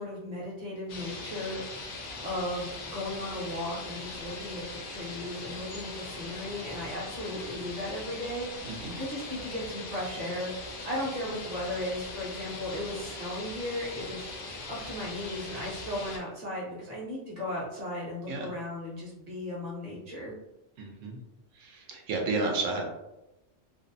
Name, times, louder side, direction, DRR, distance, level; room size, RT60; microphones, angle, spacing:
voice 1, 0.0-1.6 2.2-8.5 8.9-10.5 10.9-14.2 14.7-20.3, left 1 dB, 40° right, -5 dB, 0.8 m, -36 dB
Waterfall Binaural, 0.9-16.2, left 3 dB, 60° left, 0.6 m, -41 dB
voice 2, 8.6-9.0 18.3-18.5 20.8-21.2 21.5-22.8, right 3 dB, 90° right, 1 dB, 1.0 m, -32 dB
2.6 x 2.1 x 2.5 m, 0.93 s
omnidirectional pair, 1.3 m